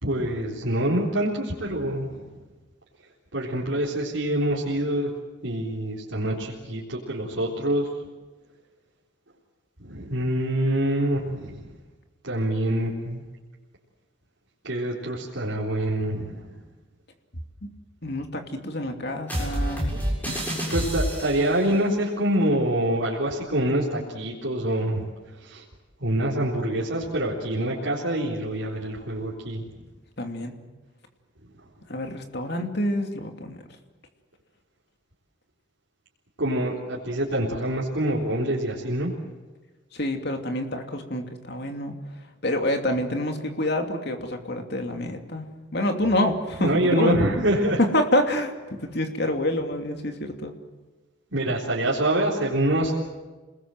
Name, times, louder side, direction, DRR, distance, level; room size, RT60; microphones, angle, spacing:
voice 1, 0.0-2.2 3.3-5.1 5.4-7.9 9.8-11.7 12.2-13.2 14.6-16.4 19.9-20.0 20.7-25.1 25.4-25.6 26.0-29.7 36.4-39.1 46.6-47.8 51.3-53.0, right 1 dB, 65° right, -5 dB, 3.9 m, -25 dB
voice 2, 18.0-20.0 20.2-20.4 30.2-30.5 31.9-33.6 39.9-42.0 42.4-45.5 45.7-47.1 47.8-50.5, left 1 dB, 55° left, 5 dB, 2.8 m, -27 dB
sound 1, 19.3-21.6, equal, 10° left, 7.2 m, -28 dB
29.5 x 20.5 x 7.8 m, 1.3 s
head